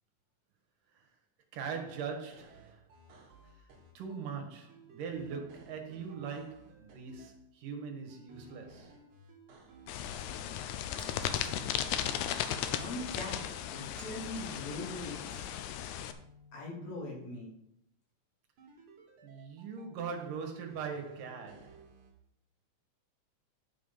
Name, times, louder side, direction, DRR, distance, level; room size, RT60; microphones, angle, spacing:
voice 1, 1.5-2.8 3.2-3.6 3.9-9.0 19.2-21.9, right 6 dB, 85° right, 3.1 m, -41 dB
sound 1, 2.3-4.3 4.7-7.3 8.1-10.7 11.3-13.9 14.2-17.1 18.6-20.1 20.7-22.1, right 2 dB, 65° right, 3.2 m, -57 dB
sound 2, 9.9-16.1, left 10 dB, 80° left, 1.9 m, -36 dB
Shatter, 11.0-11.7 14.0-14.7, right 4 dB, 45° right, 1.6 m, -56 dB
voice 2, 12.7-13.4 13.7-15.5 16.5-17.5, left 2 dB, 55° left, 3.8 m, -41 dB
11.5 x 5.5 x 5.4 m
omnidirectional pair, 3.7 m